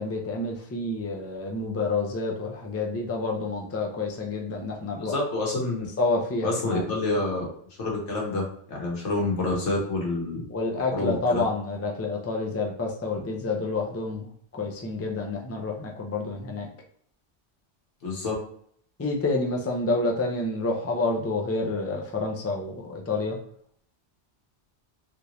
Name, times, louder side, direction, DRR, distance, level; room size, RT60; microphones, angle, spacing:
voice 1, 0.0-5.1 6.0-6.8 10.5-16.7 19.0-23.4, left 3 dB, 20° left, 0 dB, 0.4 m, -28 dB
voice 2, 5.0-5.9 6.4-7.5 7.8-10.4 10.9-11.4 18.0-18.3, left 2 dB, 85° left, -2 dB, 1.4 m, -28 dB
3.5 x 2.5 x 2.9 m, 0.63 s
omnidirectional pair, 1.2 m